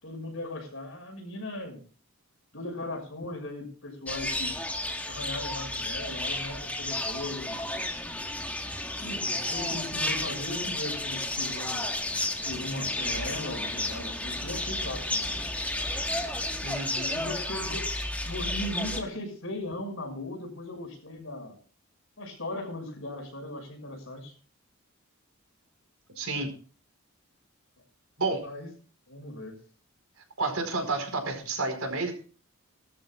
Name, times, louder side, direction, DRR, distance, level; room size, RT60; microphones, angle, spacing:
voice 1, 0.0-1.8 2.5-4.6 5.1-7.6 8.9-11.9 12.4-15.3 17.1-17.9 18.2-21.6 22.2-24.3 28.4-28.7 29.1-29.6, left 1 dB, 65° left, 3 dB, 6.2 m, -38 dB
sound 1, 4.1-19.0, left 1 dB, 5° left, 1.6 m, -32 dB
voice 2, 16.6-17.2 26.2-26.5 28.2-28.5 30.4-32.1, right 3 dB, 80° right, 5 dB, 4.8 m, -30 dB
21.0 x 13.0 x 2.5 m, 0.39 s
head